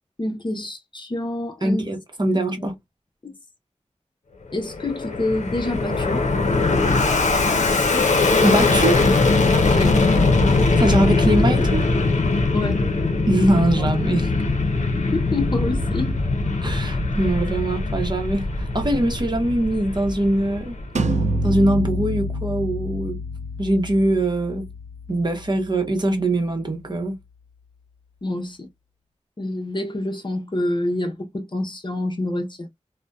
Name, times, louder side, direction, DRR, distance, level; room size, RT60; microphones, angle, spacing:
voice 1, 0.2-1.9 3.2-3.4 4.5-6.2 7.9-8.1 9.7-10.0 12.5-12.8 13.8-13.9 14.9-16.2 28.2-28.7 29.4-32.7, left 1 dB, 40° left, 0.7 m, -27 dB
voice 2, 1.6-2.7 8.4-9.1 10.8-11.9 13.3-14.3 16.6-20.8 21.4-23.2 23.6-24.7 25.1-27.2, right 1 dB, 40° right, 0.8 m, -22 dB
Fixed-wing aircraft airplane, 4.5-21.2, left 3 dB, 90° left, 0.6 m, -21 dB
sound 1, 21.0-26.6, equal, 75° right, 0.4 m, -28 dB
2.6 x 2.1 x 2.2 m
wide cardioid pair, 50°, 12 cm